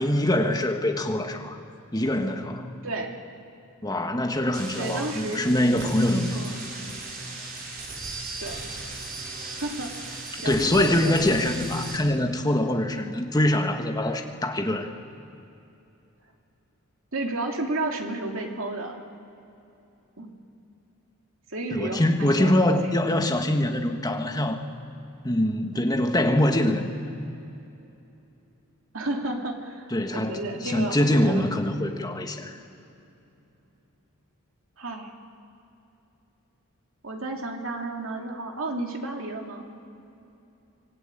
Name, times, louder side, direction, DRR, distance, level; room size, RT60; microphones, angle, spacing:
voice 1, 0.0-1.6 1.9-2.7 3.8-6.4 10.4-14.9 21.7-24.6 25.2-26.9 29.9-32.6, left 1 dB, 15° left, 4 dB, 1.6 m, -24 dB
voice 2, 2.8-3.2 4.8-5.5 6.3-6.6 8.4-8.6 9.5-11.2 17.1-19.0 20.2-20.3 21.5-23.0 28.9-31.4 34.8-35.1 37.0-39.6, right 2 dB, 65° right, 2 dB, 2.8 m, -32 dB
sound 1, 4.5-12.0, right 3 dB, 40° right, 4.1 m, -37 dB
25.0 x 18.0 x 9.1 m, 2.8 s
head